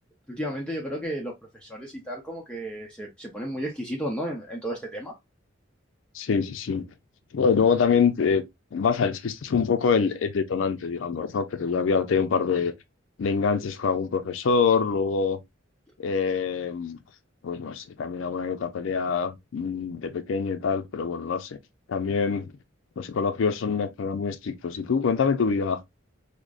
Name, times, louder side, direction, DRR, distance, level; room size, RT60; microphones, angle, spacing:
voice 1, 0.3-1.3 1.6-5.1, equal, 5° left, 0.6 m, -33 dB
voice 2, 6.1-6.8 7.3-8.4 8.7-12.7 13.2-15.4 16.0-17.0 17.4-21.6 21.9-22.5 23.0-25.8, left 5 dB, 75° left, 0.4 m, -25 dB
4.8 x 2.0 x 2.3 m
head